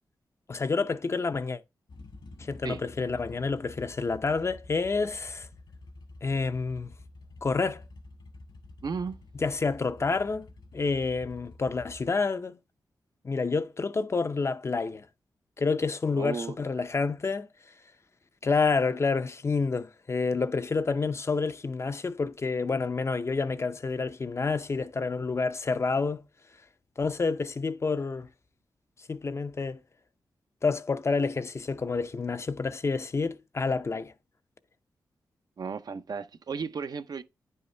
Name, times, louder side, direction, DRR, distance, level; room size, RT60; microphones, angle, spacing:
voice 1, 0.5-1.6 2.4-5.5 6.2-6.9 7.4-7.8 9.3-10.5 10.7-12.6 13.2-15.1 15.6-17.5 18.4-26.2 27.0-28.3 29.1-29.8 30.6-34.1, left 4 dB, 35° left, 0.5 m, -28 dB
sound 1, 1.9-12.1, left 2 dB, 75° left, 1.7 m, -49 dB
voice 2, 8.8-9.2 16.1-16.6 35.6-37.2, right 5 dB, 60° right, 0.6 m, -34 dB
9.8 x 5.5 x 3.2 m
wide cardioid pair, 90°, 8 cm